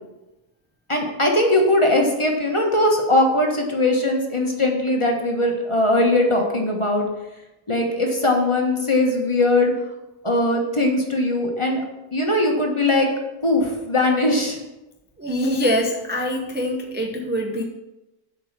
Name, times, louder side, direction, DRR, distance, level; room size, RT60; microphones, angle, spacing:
voice 1, 0.9-7.0 7.7-9.7 10.2-11.8 12.1-13.1 13.4-14.6, left 1 dB, 20° left, 1 dB, 1.2 m, -20 dB
voice 2, 15.2-17.6, equal, 10° right, -1 dB, 0.5 m, -24 dB
7.6 x 5.3 x 7.3 m, 0.99 s
omnidirectional pair, 1.6 m